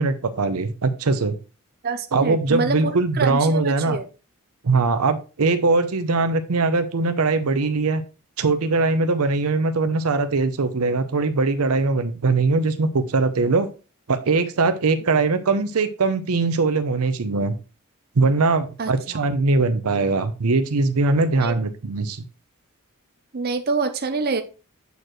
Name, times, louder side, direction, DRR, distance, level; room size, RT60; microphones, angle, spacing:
voice 1, 0.0-1.4 2.1-4.0 4.6-8.0 8.4-13.7 14.1-17.5 18.2-22.2, right 3 dB, 80° right, 11 dB, 0.7 m, -21 dB
voice 2, 1.8-4.1 18.8-19.3 21.4-21.5 23.3-24.4, right 4 dB, 45° right, 7 dB, 0.6 m, -26 dB
8.1 x 4.5 x 3.1 m, 0.33 s
head